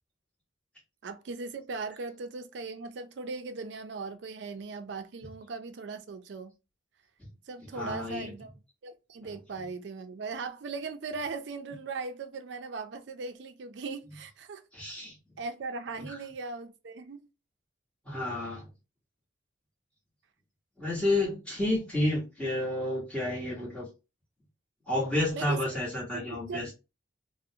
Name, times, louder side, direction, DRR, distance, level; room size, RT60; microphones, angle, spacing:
voice 1, 1.0-6.5 7.5-8.5 8.8-14.6 15.4-17.3 25.3-25.6 26.1-26.7, right 4 dB, 65° right, 0.4 m, -39 dB
voice 2, 7.7-8.3 14.7-15.1 16.0-16.2 18.0-18.7 20.8-23.9 24.9-26.7, left 1 dB, 5° left, 1.1 m, -30 dB
2.5 x 2.0 x 2.7 m
head